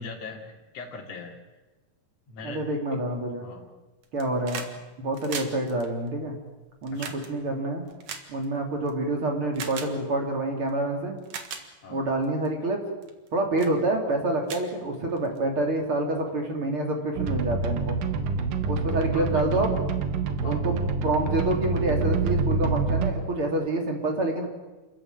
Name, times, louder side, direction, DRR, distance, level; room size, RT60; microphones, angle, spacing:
voice 1, 0.0-1.4 2.3-2.6 3.4-3.7 6.9-7.2 11.8-12.0 19.1-19.7 20.4-20.7, left 4 dB, 50° left, -1 dB, 3.7 m, -40 dB
voice 2, 2.4-3.4 4.1-4.6 5.0-6.3 6.8-7.8 8.3-11.2 11.9-12.8 13.3-18.0 18.7-19.7 20.4-20.8 21.0-24.5, right 2 dB, 40° right, 2 dB, 3.6 m, -27 dB
Shotgun cocking, 4.0-4.7 5.0-8.9 9.5-9.9 10.7-10.8 11.2-11.6 12.2-12.5 13.0-13.3 13.6-13.7 14.1-14.2 14.4-15.4 16.5-16.6, right 6 dB, 60° right, 2.9 m, -38 dB
sound 1, 17.2-23.1, right 4 dB, 90° right, 3.3 m, -27 dB
28.0 x 14.0 x 9.1 m, 1.1 s
omnidirectional pair, 3.8 m